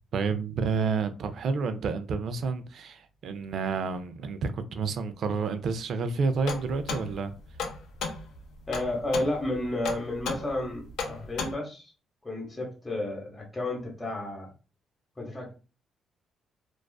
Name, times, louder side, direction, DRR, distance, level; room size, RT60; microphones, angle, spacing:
voice 1, 0.1-7.3, right 5 dB, 65° right, 0.3 m, -29 dB
sound 1, 6.4-11.5, left 5 dB, 80° left, 0.5 m, -35 dB
voice 2, 8.7-11.9 12.2-14.5 15.2-15.5, left 1 dB, 15° left, 0.9 m, -32 dB
2.4 x 2.3 x 2.2 m
cardioid pair, 90°, 0 cm